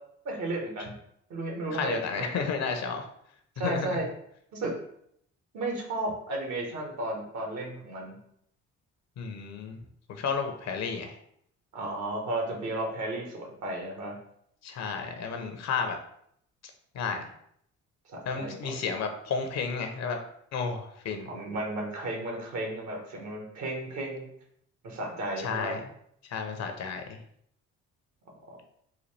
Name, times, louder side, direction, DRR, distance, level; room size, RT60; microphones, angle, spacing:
voice 1, 0.2-0.9 1.3-2.3 3.6-4.0 4.5-4.7 5.5-8.2 11.7-14.2 18.1-18.7 21.2-24.3 24.8-25.8 28.5-28.6, right 2 dB, 70° right, 0 dB, 1.3 m, -33 dB
voice 2, 1.7-3.1 3.6-4.0 9.2-9.8 10.1-11.2 14.6-16.0 16.9-17.3 18.2-20.2 20.5-21.3 25.4-25.8 26.3-27.2, left 5 dB, 60° left, 5 dB, 0.7 m, -32 dB
4.1 x 2.3 x 3.2 m, 0.70 s
supercardioid pair, 70°, 30 cm